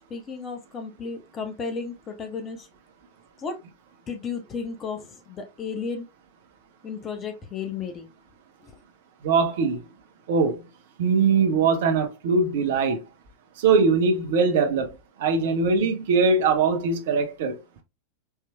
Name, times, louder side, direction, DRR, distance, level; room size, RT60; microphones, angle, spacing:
voice 1, 0.1-2.7 3.4-3.6 4.1-6.1 6.8-8.1 8.6-8.8, left 5 dB, 25° left, 0.8 m, -33 dB
voice 2, 9.2-9.8 10.3-10.6 11.0-13.0 13.6-14.9 15.2-17.6, right 4 dB, 55° right, 0.9 m, -21 dB
4.6 x 3.0 x 2.3 m
figure-of-eight pair, 90°, 0 cm